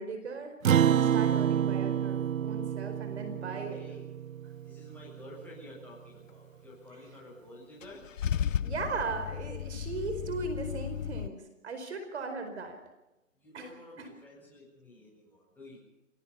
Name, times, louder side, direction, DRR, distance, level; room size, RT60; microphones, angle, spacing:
voice 1, 0.0-3.8 8.6-12.8 13.5-13.7 14.0-14.1, right 4 dB, 55° right, 8 dB, 4.7 m, -38 dB
Acoustic guitar, 0.6-5.3, right 9 dB, 85° right, 0.6 m, -28 dB
voice 2, 3.4-4.1 4.6-8.0 13.4-15.8, left 1 dB, 5° left, -5 dB, 7.3 m, -50 dB
Car / Engine starting / Idling, 7.8-11.3, left 9 dB, 70° left, 0.7 m, -34 dB
28.0 x 18.0 x 5.6 m, 0.99 s
hypercardioid pair, 150°, 39 cm